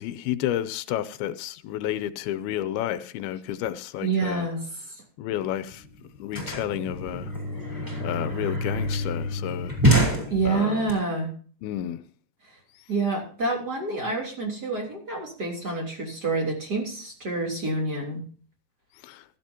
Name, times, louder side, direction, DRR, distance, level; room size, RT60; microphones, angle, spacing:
voice 1, 0.0-4.5 5.2-5.9 6.2-7.3 8.0-9.8 10.5-10.9 11.6-12.0 19.0-19.2, left 12 dB, 85° left, 2.6 m, -31 dB
voice 2, 4.0-4.6 10.3-11.3 12.9-18.2, right 3 dB, 25° right, 3.6 m, -27 dB
sound 1, 5.4-5.5 5.7-10.9, equal, 5° right, 4.0 m, -26 dB
15.5 x 13.5 x 2.9 m
omnidirectional pair, 4.3 m